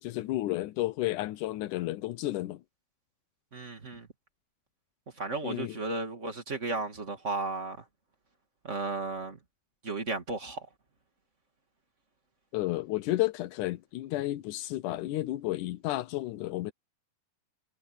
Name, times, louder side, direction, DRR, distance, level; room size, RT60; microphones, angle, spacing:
voice 1, 0.0-2.6 5.4-5.8 12.5-16.7, left 16 dB, 75° left, 1.9 m, -32 dB
voice 2, 3.5-4.1 5.2-7.8 8.6-9.4 9.8-10.6, right 3 dB, 25° right, 2.1 m, -34 dB
omnidirectional pair, 4.4 m